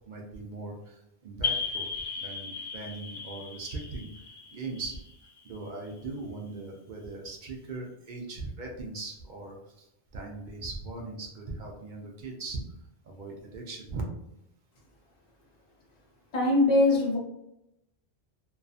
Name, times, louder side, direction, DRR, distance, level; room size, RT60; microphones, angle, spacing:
voice 1, 0.1-1.9 2.2-4.1 4.5-5.0 5.4-9.9 10.1-12.6 13.1-14.0, right 3 dB, 55° right, 0 dB, 0.6 m, -39 dB
sound 1, 1.4-5.9, left 5 dB, 85° left, 0.8 m, -36 dB
voice 2, 16.3-17.2, left 2 dB, 50° left, -5 dB, 0.7 m, -22 dB
2.6 x 2.3 x 2.4 m, 0.86 s
omnidirectional pair, 1.0 m